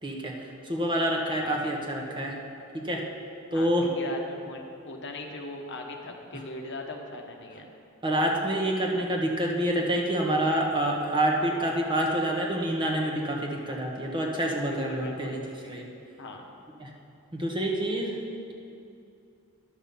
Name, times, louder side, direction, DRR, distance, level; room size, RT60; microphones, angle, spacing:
voice 1, 0.0-0.3 0.7-2.3 2.7-3.0 3.5-3.9 8.0-15.4 15.7-15.8 16.8-16.9 17.3-18.1, right 1 dB, 20° right, -1 dB, 1.2 m, -27 dB
voice 2, 3.5-7.7 14.7-15.4 16.2-16.4, left 2 dB, 55° left, 2 dB, 1.1 m, -39 dB
11.5 x 6.0 x 7.0 m, 2.6 s
head